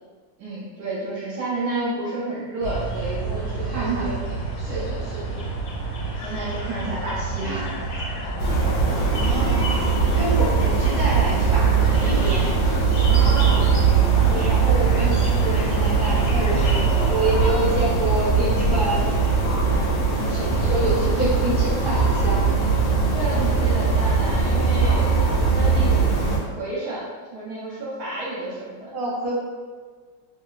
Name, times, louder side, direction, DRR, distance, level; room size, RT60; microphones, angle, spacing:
voice 1, 0.4-4.2 4.7-4.9 6.2-7.8 13.1-13.8 23.1-26.0 26.4-27.1 27.3-28.9, right 2 dB, 65° right, -8 dB, 1.1 m, -30 dB
sound 1, 2.6-17.4, right 2 dB, 70° left, 0.9 m, -30 dB
voice 2, 3.6-4.1 4.6-5.4 8.2-8.3 9.2-12.5 14.3-19.3 20.3-22.4 28.9-29.4, right 1 dB, ahead, -11 dB, 0.5 m, -28 dB
sound 2, 8.4-26.4, right 5 dB, 90° left, 1.3 m, -20 dB
3.2 x 2.0 x 2.3 m, 1.5 s
omnidirectional pair, 2.0 m